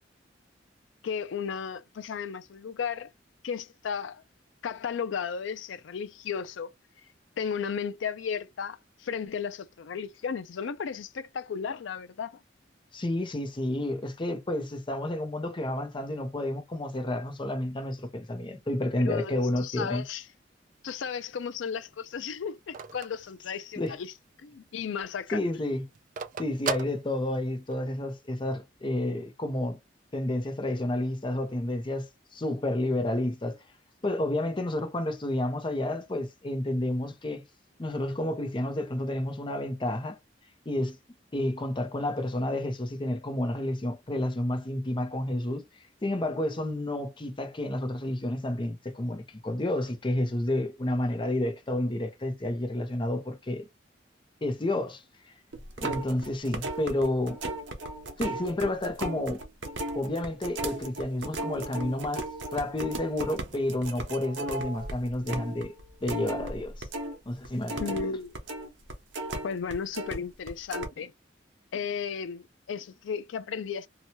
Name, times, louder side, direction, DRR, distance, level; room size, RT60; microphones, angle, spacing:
voice 1, 1.0-3.1 3.4-4.2 4.6-6.7 7.4-12.4 19.0-20.2 20.8-24.1 24.4-25.4 67.8-68.4 69.4-71.1 71.7-73.9, left 6 dB, 90° left, 0.4 m, -34 dB
voice 2, 12.9-20.0 23.8-24.0 25.3-25.8 26.4-29.8 30.1-33.6 34.0-37.4 37.8-40.2 40.7-41.0 41.3-45.6 46.0-53.7 54.4-55.0 55.8-57.4 58.2-59.4 59.9-65.7 66.0-66.9 67.3-68.0, left 1 dB, 25° left, 0.6 m, -30 dB
Telephone, 20.7-24.1 24.5-24.6 24.9-27.7, right 6 dB, 45° right, 0.3 m, -37 dB
sound 1, 55.5-67.2 67.4-70.2 70.5-70.9, right 2 dB, 85° right, 0.9 m, -36 dB
2.8 x 2.2 x 2.8 m
head